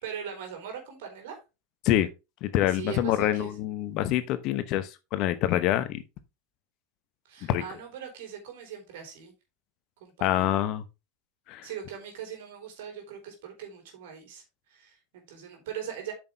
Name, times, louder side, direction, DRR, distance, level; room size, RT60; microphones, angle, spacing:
voice 1, 0.0-1.4 2.7-3.5 7.3-9.3 10.0-10.6 11.6-14.4 14.7-16.1, right 8 dB, 65° right, 3.7 m, -40 dB
voice 2, 2.4-6.0 7.5-7.6 10.2-10.8 11.5-11.7, left 13 dB, 50° left, 0.9 m, -26 dB
8.7 x 6.1 x 3.3 m
hypercardioid pair, 85°, 0 cm